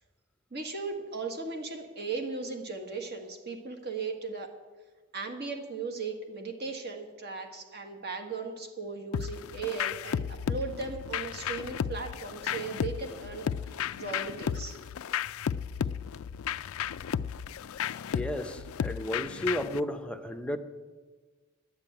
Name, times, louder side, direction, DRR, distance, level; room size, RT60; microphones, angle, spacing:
voice 1, 0.5-4.5 5.1-13.5 14.0-14.8, right 4 dB, 50° right, 1.6 m, -37 dB
sound 1, 9.1-19.8, left 8 dB, 80° left, 0.4 m, -34 dB
voice 2, 18.1-20.6, left 1 dB, 5° left, 0.6 m, -33 dB
11.5 x 8.9 x 8.9 m
head